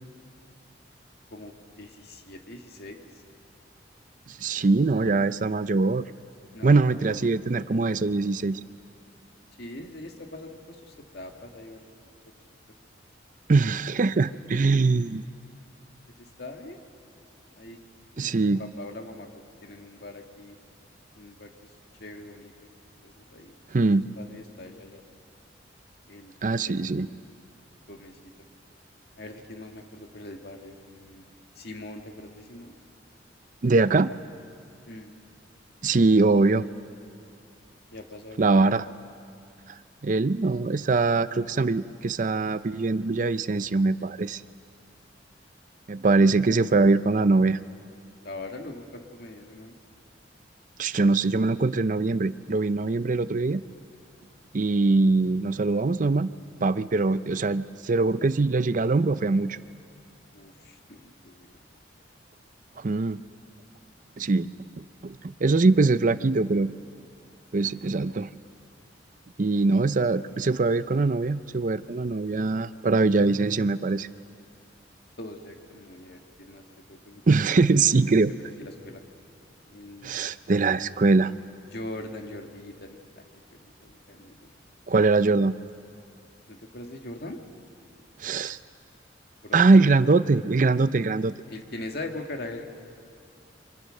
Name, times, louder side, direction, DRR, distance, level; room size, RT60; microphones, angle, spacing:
voice 1, 1.3-3.2 6.5-7.6 7.9-8.0 9.6-11.9 14.6-14.9 16.1-16.9 17.5-17.8 18.2-20.6 21.1-21.7 22.0-22.7 23.0-23.6 24.2-25.0 26.1-26.9 27.9-28.3 29.2-31.3 31.6-32.8 34.9-35.1 37.9-38.7 48.2-49.8 60.3-61.6 67.6-67.9 69.5-69.7 70.1-70.4 75.2-77.2 78.1-79.0 79.7-80.2 81.7-83.2 83.5-84.5 86.5-87.4 89.4-90.2 91.5-92.6, left 2 dB, 60° left, 4 dB, 2.2 m, -42 dB
voice 2, 4.3-6.0 6.6-8.6 13.5-15.2 18.2-18.6 23.7-24.0 26.4-27.1 33.6-34.1 35.8-36.7 38.4-38.9 40.0-44.4 45.9-47.6 50.8-53.6 54.5-56.3 56.6-59.6 62.8-63.2 64.2-64.5 64.8-66.7 67.5-68.3 69.4-74.1 77.3-78.3 80.0-81.3 84.9-85.6 88.2-88.6 89.5-91.3, right 3 dB, 45° right, 14 dB, 0.5 m, -22 dB
29.5 x 25.5 x 6.6 m, 2.5 s
head